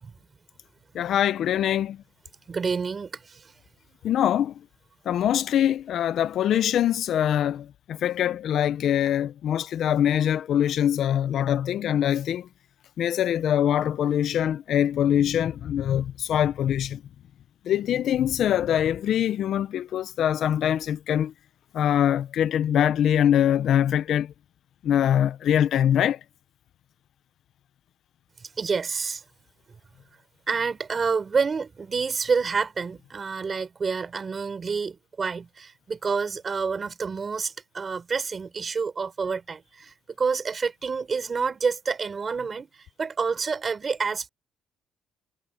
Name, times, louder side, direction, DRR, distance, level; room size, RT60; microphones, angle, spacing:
voice 1, 0.9-2.0 4.0-4.5 5.1-12.5 13.0-17.0 17.7-21.3 21.7-24.3 24.8-26.2, left 10 dB, 55° left, 0.6 m, -23 dB
voice 2, 2.5-3.5 28.6-29.2 30.5-42.7 43.0-44.3, right 5 dB, 30° right, 5.1 m, -28 dB
cardioid pair, 135°, 0 cm